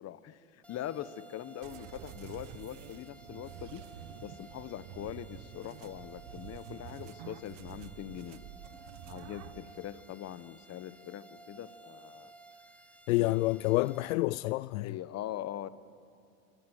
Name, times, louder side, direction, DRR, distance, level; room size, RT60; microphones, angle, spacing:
voice 1, 0.0-3.8 4.2-8.4 9.0-12.3 13.2-13.3 14.8-15.7, left 12 dB, 35° left, 1.2 m, -42 dB
sound 1, 0.6-14.1, right 2 dB, 5° left, 2.0 m, -55 dB
sound 2, 1.6-9.6, right 10 dB, 60° right, 1.7 m, -48 dB
voice 2, 13.1-14.9, left 20 dB, 70° left, 0.6 m, -28 dB
27.0 x 25.5 x 8.1 m
hypercardioid pair, 105°, 42 cm